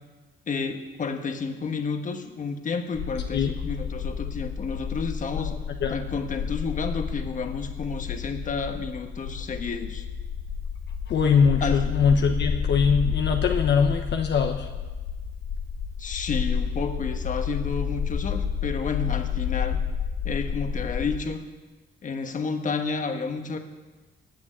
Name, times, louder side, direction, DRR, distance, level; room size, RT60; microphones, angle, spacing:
voice 1, 0.5-5.5 5.9-10.1 11.6-11.9 16.0-19.8 20.2-21.4 22.0-23.6, left 5 dB, 40° left, 6 dB, 1.3 m, -31 dB
sound 1, 2.9-21.2, left 7 dB, 90° left, 1.4 m, -30 dB
voice 2, 11.1-14.7, left 6 dB, 60° left, 4 dB, 1.1 m, -22 dB
16.5 x 6.2 x 9.8 m, 1.2 s
cardioid pair, 125°, 20 cm